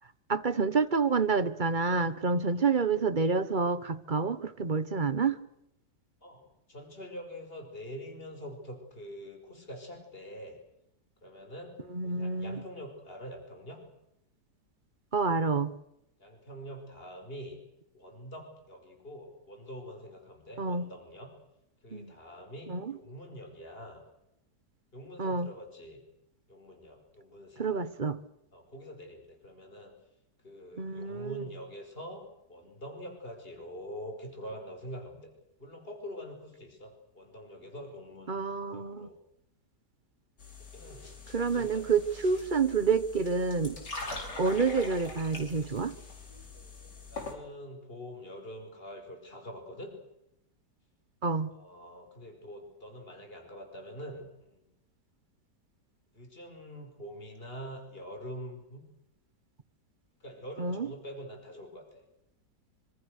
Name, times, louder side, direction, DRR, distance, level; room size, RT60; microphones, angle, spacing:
voice 1, 0.3-5.4 11.9-12.6 15.1-15.7 20.6-20.9 21.9-22.1 22.7-22.9 25.2-25.5 27.6-28.2 30.8-31.4 38.3-39.1 41.3-43.8 44.4-45.9 51.2-51.5 60.6-60.9, right 4 dB, 30° right, 13 dB, 1.2 m, -28 dB
voice 2, 2.3-2.8 6.2-10.6 11.2-13.8 16.2-17.6 17.9-21.3 21.8-24.0 24.9-26.0 26.5-27.8 28.5-29.9 30.4-35.3 35.6-39.2 40.6-41.9 42.3-42.6 44.0-44.2 47.1-50.0 51.5-54.7 56.1-58.9 60.2-62.0, equal, 30° left, 4 dB, 5.4 m, -45 dB
sound 1, 40.4-47.3, left 3 dB, 75° left, 5.4 m, -43 dB
26.0 x 25.5 x 6.6 m, 0.82 s
omnidirectional pair, 1.9 m